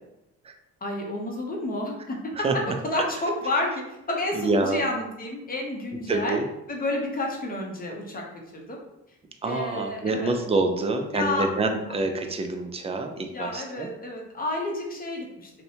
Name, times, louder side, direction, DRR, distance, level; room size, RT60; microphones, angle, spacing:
voice 1, 0.8-2.2 2.8-6.4 6.7-8.2 8.5-8.8 9.4-10.3 11.1-11.5 13.3-15.5, left 2 dB, 30° left, -1 dB, 0.7 m, -30 dB
voice 2, 4.3-4.8 6.1-6.4 9.4-13.9, right 3 dB, 20° right, 5 dB, 0.3 m, -26 dB
2.6 x 2.1 x 2.7 m, 0.86 s
cardioid pair, 90°, 30 cm